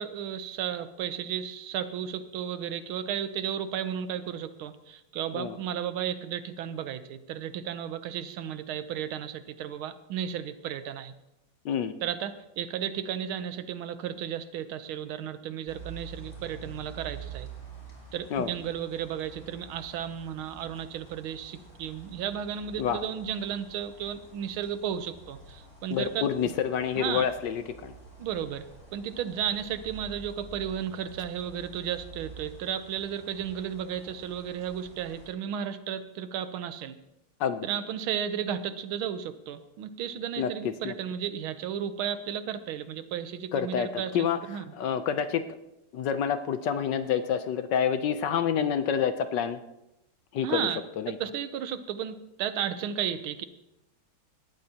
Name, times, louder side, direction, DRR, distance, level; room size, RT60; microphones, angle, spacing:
voice 1, 0.0-11.1 12.0-17.5 18.1-26.3 27.0-27.3 28.2-28.7 28.9-37.0 37.6-44.6 50.4-50.8 51.2-53.5, right 9 dB, 85° right, 11 dB, 1.6 m, -34 dB
sound 1, 15.7-35.3, right 4 dB, 25° left, 4.3 m, -48 dB
voice 2, 25.9-27.9 37.4-37.7 40.4-40.9 43.5-45.4 45.9-49.6 50.3-50.7 51.0-51.2, left 8 dB, 70° left, 10 dB, 1.2 m, -28 dB
18.5 x 13.0 x 2.9 m, 0.90 s
omnidirectional pair, 2.3 m